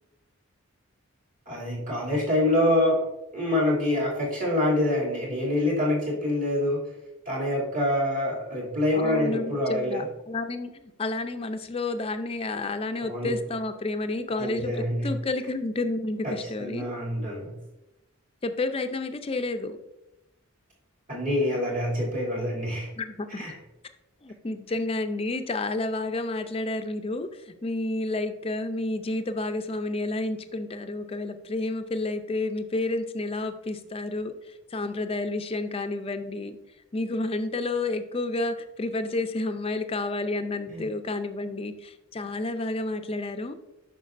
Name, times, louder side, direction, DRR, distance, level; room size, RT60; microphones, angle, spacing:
voice 1, 1.5-3.0 3.3-6.9 7.3-10.1 13.0-13.3 14.4-15.1 16.2-16.3 16.6-17.5 21.1-22.9 23.4-23.5 40.7-40.8, left 1 dB, 40° right, -5 dB, 2.7 m, -26 dB
voice 2, 8.9-16.9 18.4-19.8 23.0-23.4 24.2-36.6 36.9-43.5, left 2 dB, 25° left, 8 dB, 0.4 m, -30 dB
9.0 x 5.9 x 2.5 m, 0.97 s
head